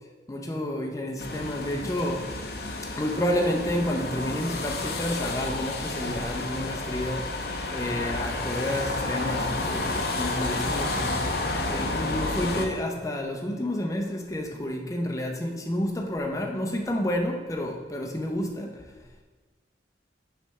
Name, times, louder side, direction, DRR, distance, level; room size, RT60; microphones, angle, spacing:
voice 1, 0.3-2.3 3.0-7.4 7.7-11.3 11.7-18.9, left 1 dB, 20° left, 1 dB, 0.6 m, -30 dB
sound 1, 1.2-12.7, left 2 dB, 60° left, 0.7 m, -30 dB
6.3 x 3.3 x 5.4 m, 1.3 s
head